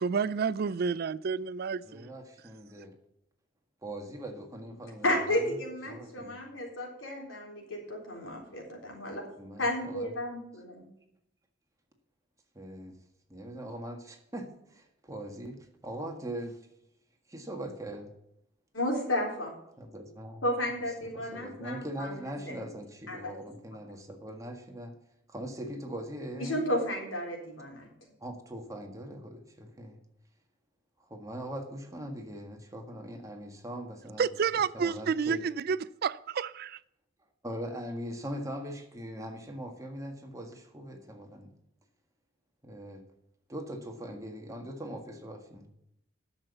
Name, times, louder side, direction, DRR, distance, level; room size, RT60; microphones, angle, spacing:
voice 1, 0.0-2.1 34.2-36.8, right 6 dB, 55° right, 0.4 m, -30 dB
voice 2, 1.8-2.9 3.8-5.5 5.9-6.4 9.4-10.1 12.5-13.0 13.3-15.6 15.8-16.6 17.3-18.1 19.8-20.5 21.0-24.9 25.3-26.6 28.2-30.0 31.0-34.3 34.7-35.4 37.4-41.5 42.6-43.0 43.5-45.7, right 1 dB, 15° right, 1.7 m, -41 dB
voice 3, 5.0-9.2 9.6-10.7 18.7-19.5 20.4-22.5 23.1-23.3 26.4-27.9, left 1 dB, 90° left, 3.9 m, -32 dB
10.5 x 7.1 x 6.9 m
head